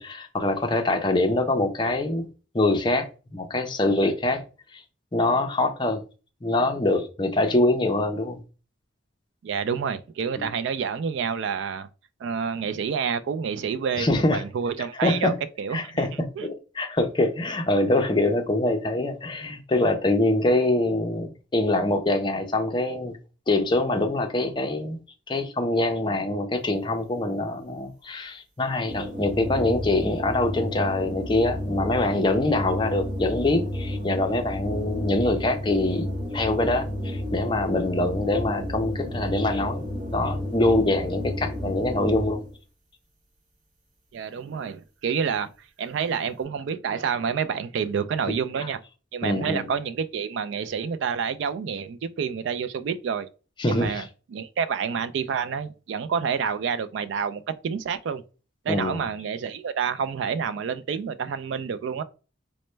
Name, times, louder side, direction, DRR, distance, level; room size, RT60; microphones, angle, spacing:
voice 1, 0.0-2.3 2.5-4.4 4.7-4.8 5.1-6.0 6.4-8.4 10.4-10.5 14.0-14.4 15.0-15.4 15.7-16.3 16.8-23.2 23.5-25.0 25.3-36.1 36.3-39.8 40.1-42.4 49.2-49.7 53.6-54.0 58.7-59.0, left 2 dB, 25° left, 0.5 m, -24 dB
voice 2, 9.4-11.9 12.2-16.0 16.4-16.5 44.1-45.5 45.8-48.8 49.1-53.3 53.7-58.2 58.6-62.0, right 6 dB, 70° right, 0.3 m, -28 dB
sound 1, 28.9-42.6, left 1 dB, 45° right, 0.9 m, -31 dB
4.1 x 2.1 x 3.1 m
head